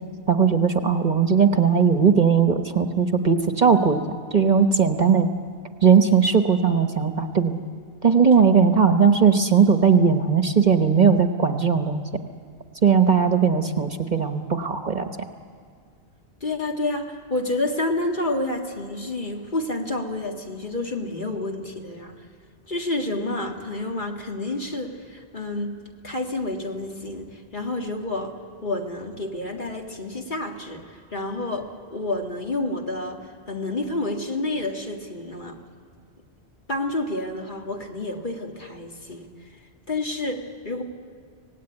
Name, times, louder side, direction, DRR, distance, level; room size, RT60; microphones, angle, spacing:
voice 1, 0.3-4.0 4.3-5.3 5.8-7.6 8.0-12.0 12.8-15.1, right 6 dB, 45° right, 7 dB, 1.1 m, -18 dB
voice 2, 16.4-22.1 22.7-25.8 26.0-27.3 27.5-28.3 28.6-30.8 31.1-33.2 33.5-35.6 36.7-39.3 39.9-40.8, left 2 dB, 45° left, 2 dB, 2.1 m, -29 dB
25.0 x 18.0 x 9.8 m, 2.1 s
omnidirectional pair, 1.1 m